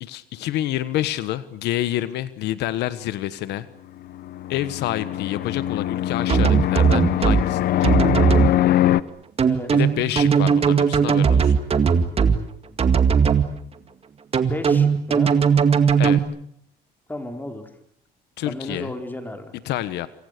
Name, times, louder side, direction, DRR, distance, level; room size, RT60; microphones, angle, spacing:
voice 1, 0.0-3.7 4.5-7.9 9.7-11.5 16.0-16.2 18.4-18.9 19.7-20.1, left 14 dB, 80° left, 14 dB, 1.3 m, -28 dB
Fixed-wing aircraft airplane, 4.1-9.0, left 12 dB, 65° left, 1.0 m, -22 dB
sound 1, 6.3-7.4 7.8-8.5 9.4-12.4 12.8-13.4 14.3-16.2, right 6 dB, 35° right, 2.1 m, -17 dB
voice 2, 14.5-15.4 17.1-17.7 18.4-19.5, left 1 dB, 10° left, 5 dB, 4.5 m, -33 dB
27.5 x 27.5 x 6.7 m, 0.67 s
cardioid pair, 110°, 17 cm